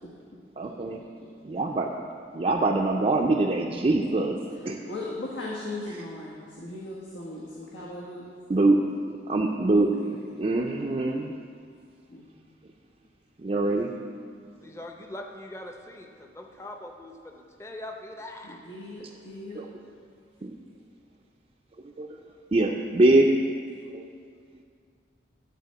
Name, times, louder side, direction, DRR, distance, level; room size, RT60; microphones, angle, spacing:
voice 1, 0.6-1.0 1.5-1.9 2.4-4.4 4.7-4.8 8.5-8.8 9.3-9.9 10.4-11.3 13.4-13.9 19.6-19.7 20.4-20.5 22.0-22.1 22.5-23.3 23.9-24.0, right 2 dB, 35° right, -1 dB, 0.4 m, -23 dB
voice 2, 4.6-8.2 9.6-10.4 12.1-12.3 18.4-19.6, left 2 dB, 85° left, -5 dB, 1.3 m, -38 dB
voice 3, 14.4-18.6, left 1 dB, 15° left, 3 dB, 0.6 m, -42 dB
11.0 x 4.2 x 7.8 m, 2.2 s
head